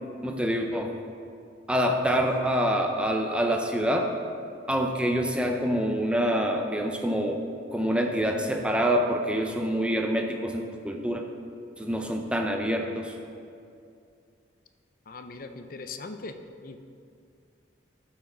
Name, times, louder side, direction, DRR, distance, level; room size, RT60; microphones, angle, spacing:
voice 1, 0.2-1.0 1.7-4.1 4.7-7.4 7.7-11.2 11.8-13.1, equal, 5° right, 3 dB, 0.5 m, -26 dB
voice 2, 15.1-16.8, left 3 dB, 50° left, 7 dB, 0.5 m, -40 dB
12.5 x 5.9 x 3.8 m, 2.4 s
head